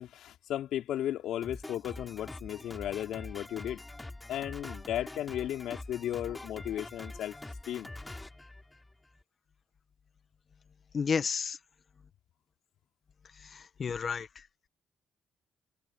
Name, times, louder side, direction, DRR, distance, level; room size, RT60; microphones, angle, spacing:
voice 1, 0.0-3.8 4.3-7.4 7.6-7.9, left 12 dB, 80° left, 4.5 m, -35 dB
Drum kit, 1.4-9.2, left 2 dB, 15° left, 4.9 m, -45 dB
voice 2, 10.9-11.6 13.4-14.3, left 6 dB, 45° left, 1.7 m, -31 dB
cardioid pair, 90°, 0 cm